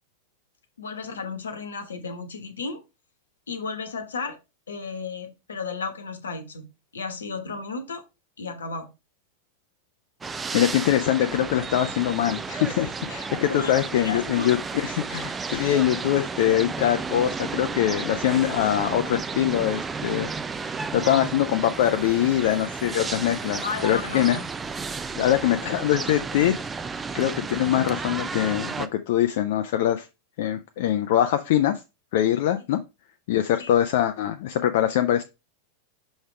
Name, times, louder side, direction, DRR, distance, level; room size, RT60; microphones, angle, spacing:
voice 1, 0.8-2.8 3.5-4.4 4.7-6.7 6.9-8.0 8.4-8.9 13.5-14.5 23.6-24.4 33.6-33.7, left 4 dB, 70° left, 1.1 m, -34 dB
sound 1, 10.2-28.9, right 4 dB, 15° right, 0.5 m, -33 dB
voice 2, 10.5-20.3 20.6-24.4 25.2-26.5 27.2-30.1 30.4-31.8 32.1-32.8 33.3-35.2, left 11 dB, 50° left, 0.5 m, -23 dB
6.3 x 3.4 x 4.4 m
figure-of-eight pair, 90°, 0 cm